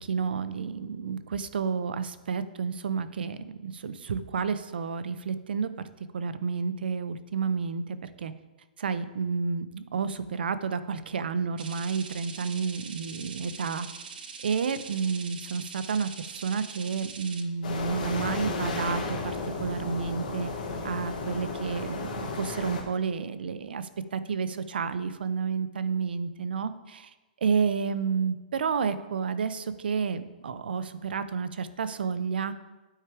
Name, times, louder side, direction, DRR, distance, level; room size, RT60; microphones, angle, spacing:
voice 1, 0.0-5.7 6.1-8.3 8.8-13.9 14.4-20.5 20.8-22.1 22.4-27.1 27.4-32.5, right 5 dB, 85° right, 13 dB, 0.5 m, -30 dB
sound 1, 11.6-17.4, right 5 dB, 70° right, 0.9 m, -43 dB
sound 2, 17.6-22.8, left 3 dB, 55° left, 1.6 m, -33 dB
8.9 x 4.7 x 4.7 m, 1.1 s
hypercardioid pair, 180°, 5 cm